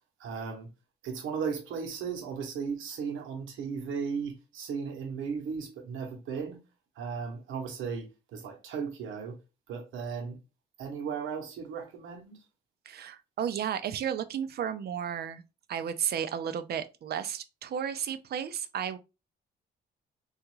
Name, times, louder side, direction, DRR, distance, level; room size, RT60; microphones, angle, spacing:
voice 1, 0.2-0.7 1.0-6.6 7.0-9.4 9.7-10.4 10.8-12.4, right 6 dB, 80° right, 0.9 m, -36 dB
voice 2, 12.9-15.4 15.7-19.0, right 8 dB, 55° right, 0.5 m, -33 dB
3.5 x 2.4 x 3.1 m
cardioid pair, 90°, 20 cm